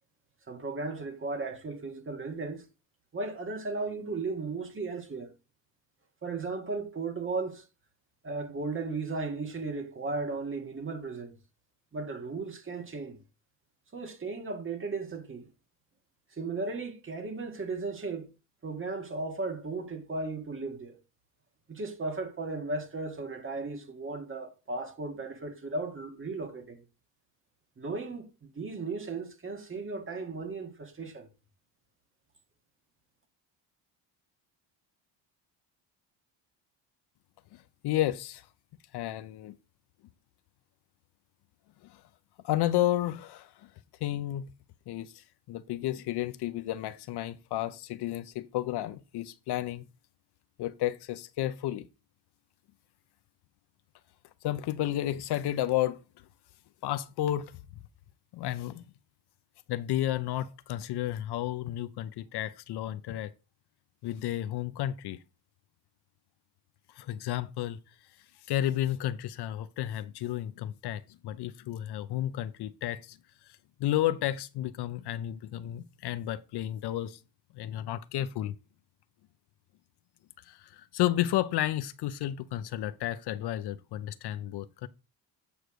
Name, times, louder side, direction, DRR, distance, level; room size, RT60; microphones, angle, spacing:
voice 1, 0.5-2.6 3.1-5.3 6.2-7.7 8.2-11.4 11.9-13.2 13.9-15.5 16.3-18.3 18.6-21.0 21.7-26.8 27.8-31.3, right 3 dB, 25° right, 1.6 m, -36 dB
voice 2, 37.5-38.5 38.9-39.5 41.8-42.0 42.4-43.7 44.0-44.5 44.9-49.9 50.6-51.9 54.4-56.0 56.8-57.5 58.3-58.8 59.7-63.3 64.0-65.2 67.0-67.8 68.5-73.2 73.8-77.2 77.5-78.6 80.4-84.9, left 13 dB, 60° left, 0.6 m, -32 dB
8.0 x 3.2 x 6.2 m
cardioid pair, 105°, 46 cm